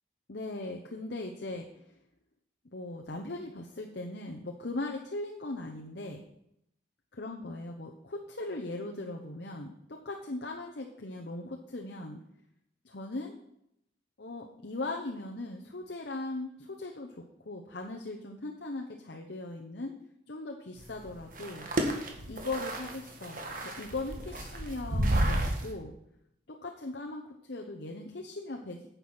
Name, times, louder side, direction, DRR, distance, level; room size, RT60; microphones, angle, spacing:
voice 1, 0.3-1.9 2.7-6.2 7.2-12.2 12.8-13.3 14.2-19.9 20.3-21.7 22.3-25.9 26.5-28.9, left 2 dB, 65° left, 1 dB, 1.0 m, -39 dB
sound 1, 20.8-25.7, right 1 dB, 45° right, 1.6 m, -32 dB
9.6 x 7.0 x 6.2 m, 0.78 s
head